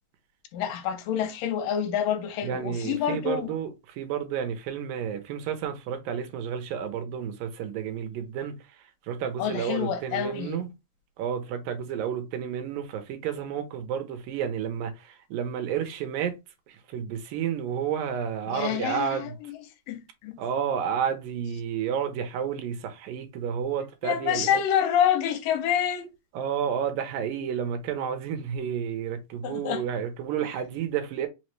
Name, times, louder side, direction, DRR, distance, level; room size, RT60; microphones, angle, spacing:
voice 1, 0.5-3.5 9.4-10.6 18.5-19.6 19.9-20.4 24.0-26.1 29.4-29.8, left 9 dB, 85° left, 2.2 m, -27 dB
voice 2, 2.4-8.6 9.1-10.7 11.2-16.3 16.7-19.4 20.4-24.5 26.3-31.3, right 8 dB, 80° right, 2.3 m, -31 dB
5.6 x 2.1 x 3.1 m
omnidirectional pair, 4.0 m